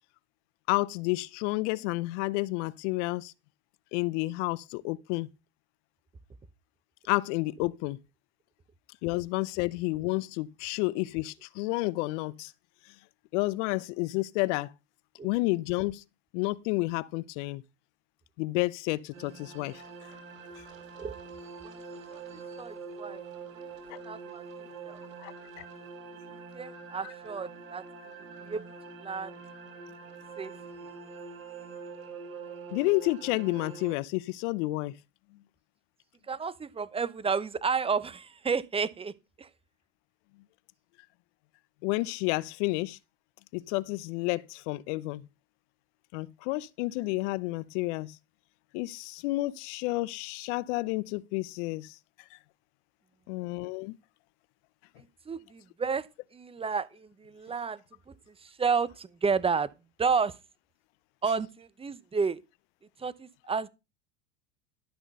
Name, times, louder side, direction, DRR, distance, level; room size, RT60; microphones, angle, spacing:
voice 1, 0.7-3.3 3.9-5.3 7.1-8.0 9.0-12.5 13.3-14.7 15.2-16.0 16.3-17.6 18.4-19.8 23.9-24.0 25.2-25.7 27.0-27.1 32.7-34.9 41.8-43.0 43.5-45.2 46.1-48.2 48.7-52.0 53.3-54.0, left 21 dB, 65° left, 0.7 m, -30 dB
sound 1, 19.1-33.9, right 5 dB, 85° right, 2.7 m, -45 dB
voice 2, 22.6-23.2 24.0-24.4 24.8-25.0 26.5-27.8 28.5-28.6 29.0-29.3 30.4-30.5 36.3-39.1 39.4-39.5 55.3-56.1 56.3-57.8 58.6-59.7 60.0-60.3 61.2-62.4 63.0-63.7, right 5 dB, 15° right, 0.8 m, -31 dB
12.5 x 6.0 x 5.3 m
hypercardioid pair, 90°, 39 cm